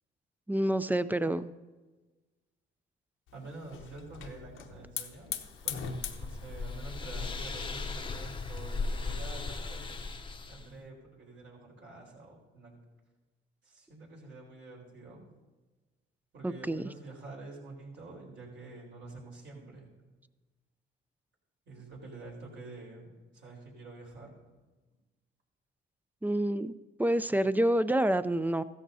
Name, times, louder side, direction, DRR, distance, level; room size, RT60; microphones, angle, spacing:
voice 1, 0.5-1.5 16.4-16.8 26.2-26.7 27.0-28.6, right 1 dB, 10° right, 14 dB, 0.4 m, -28 dB
Hiss / Fire, 3.3-10.1, left 8 dB, 85° left, 1.0 m, -43 dB
voice 2, 3.3-10.0 10.5-12.8 13.6-15.3 16.3-19.9 21.7-24.3, right 3 dB, 65° right, -2 dB, 4.1 m, -48 dB
sound 1, 5.4-10.7, left 3 dB, 25° left, 0.7 m, -37 dB
15.0 x 14.0 x 2.7 m, 1.2 s
cardioid pair, 90°, 20 cm